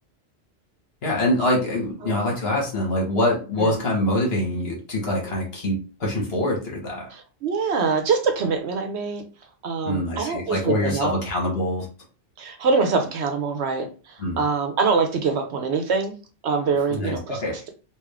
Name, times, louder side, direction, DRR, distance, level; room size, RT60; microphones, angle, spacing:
voice 1, 1.0-7.1 9.8-11.9 14.2-14.4 16.9-17.5, left 1 dB, 55° left, -1 dB, 1.6 m, -24 dB
voice 2, 7.1-9.2 9.6-11.1 12.4-16.1 16.4-17.7, right 4 dB, 70° right, 6 dB, 0.9 m, -24 dB
3.6 x 2.5 x 3.4 m, 0.34 s
omnidirectional pair, 1.2 m